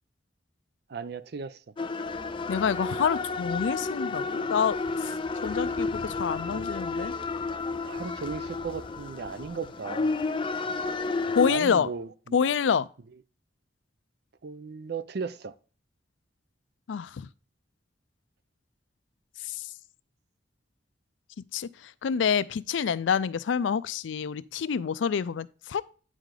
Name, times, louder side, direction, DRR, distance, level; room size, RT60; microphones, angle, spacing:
voice 1, 0.9-1.6 6.5-6.7 7.8-10.2 11.5-12.4 14.4-15.5, right 5 dB, 60° right, 0.5 m, -36 dB
sound 1, 1.8-11.5, left 3 dB, 25° left, 0.4 m, -31 dB
Bus, 2.0-12.0, equal, 10° right, 1.2 m, -54 dB
voice 2, 2.5-5.1 5.4-7.1 11.3-11.9 12.3-12.9 16.9-17.3 19.4-19.7 21.5-25.8, left 6 dB, 85° left, 0.4 m, -27 dB
9.1 x 4.9 x 3.7 m
head